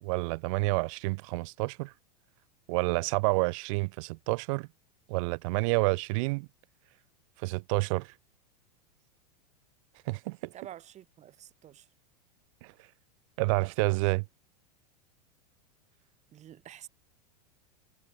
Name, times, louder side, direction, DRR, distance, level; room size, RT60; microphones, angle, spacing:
voice 1, 0.0-1.9 2.7-4.7 5.1-6.5 7.4-8.1 10.1-10.5 13.4-14.2, right 27 dB, 50° right, 0.5 m, -29 dB
voice 2, 10.5-11.9 16.3-16.9, right 11 dB, 35° right, 3.9 m, -48 dB
hypercardioid pair, 95°, 21 cm